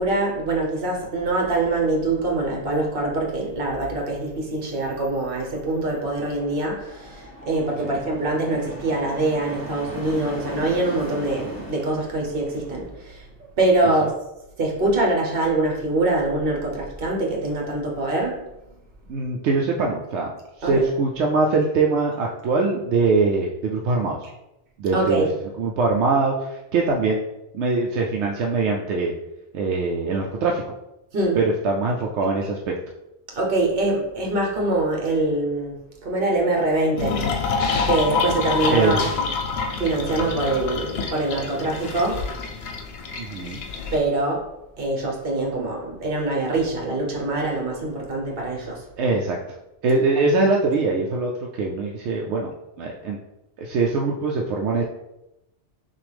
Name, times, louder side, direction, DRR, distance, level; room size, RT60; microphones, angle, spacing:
voice 1, 0.0-13.2 13.6-14.1 14.6-18.4 20.6-20.9 24.9-25.3 31.1-31.4 33.3-37.5 37.8-39.2 39.8-42.2 43.9-44.4 44.8-48.8, right 2 dB, 55° right, -1 dB, 1.2 m, -24 dB
sound 1, 5.5-12.9, equal, 20° left, 1.0 m, -38 dB
voice 2, 19.1-24.2 24.8-25.2 25.6-27.3 27.5-29.1 29.5-30.6 31.3-32.7 38.7-39.0 43.2-43.6 49.0-49.4 49.8-52.5 52.8-53.2 53.6-54.8, right 3 dB, 80° right, -1 dB, 0.8 m, -22 dB
sound 2, 37.0-44.0, left 5 dB, 65° left, 0.8 m, -27 dB
6.0 x 2.5 x 3.4 m, 0.91 s
omnidirectional pair, 1.2 m